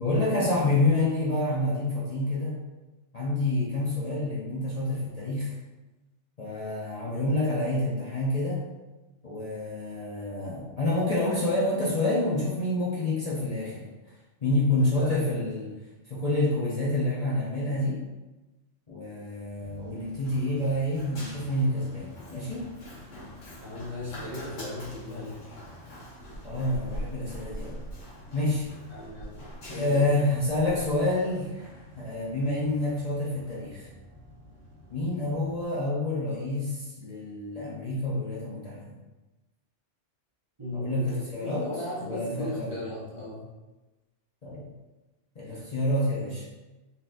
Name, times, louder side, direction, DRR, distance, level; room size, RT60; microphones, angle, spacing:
voice 1, 0.0-2.6 3.1-5.5 6.4-8.6 9.2-13.8 14.4-15.7 16.1-18.0 18.9-22.7 26.4-27.8 28.3-28.6 29.7-31.7 32.0-33.9 34.9-38.9 40.7-41.7 42.0-42.7 44.4-44.6 45.4-46.5, left 1 dB, 40° left, -7 dB, 0.7 m, -28 dB
voice 2, 14.8-15.4 23.6-25.6 28.9-29.3 29.7-30.2 40.6-43.5, left 2 dB, 30° right, -7 dB, 0.7 m, -36 dB
Run, 19.6-35.6, equal, 75° left, 1.6 m, -44 dB
4.1 x 3.8 x 2.5 m, 1.1 s
omnidirectional pair, 1.3 m